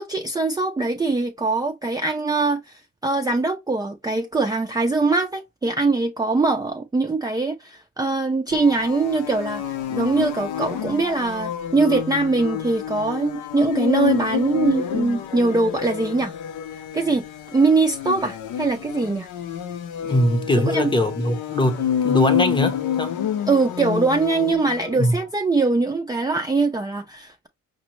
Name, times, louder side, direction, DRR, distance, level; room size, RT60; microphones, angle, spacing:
voice 1, 0.0-16.3 16.7-17.2 17.5-19.3 20.7-20.9 23.5-27.5, right 3 dB, 15° right, 0.4 m, -22 dB
sound 1, 8.5-25.1, left 9 dB, 80° left, 0.6 m, -28 dB
voice 2, 20.0-23.2 25.0-25.1, left 1 dB, 15° left, 0.8 m, -21 dB
5.2 x 2.1 x 3.0 m
cardioid pair, 90°, 30 cm